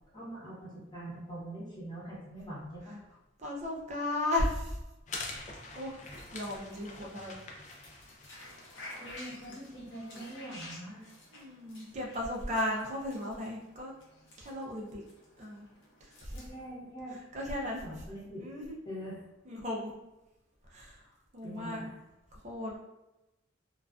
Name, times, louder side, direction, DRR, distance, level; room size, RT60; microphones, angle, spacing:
voice 1, 0.1-3.0 9.0-11.0 16.3-17.2 17.6-18.4 18.9-19.2 21.4-21.9, right 1 dB, 20° left, -8 dB, 0.8 m, -43 dB
voice 2, 3.4-4.8 5.7-6.0 6.3-7.4 11.3-13.9 14.4-15.0 15.4-15.7 16.0-16.4 17.1-18.0 18.4-18.8 19.4-19.9 20.7-21.1 21.3-21.9 22.3-22.8, left 1 dB, 35° right, -2 dB, 0.5 m, -35 dB
sound 1, 5.1-10.0, left 3 dB, 40° left, 0.3 m, -45 dB
sound 2, 6.0-16.7, left 1 dB, 65° left, 0.7 m, -52 dB
2.3 x 2.3 x 2.3 m, 0.96 s
head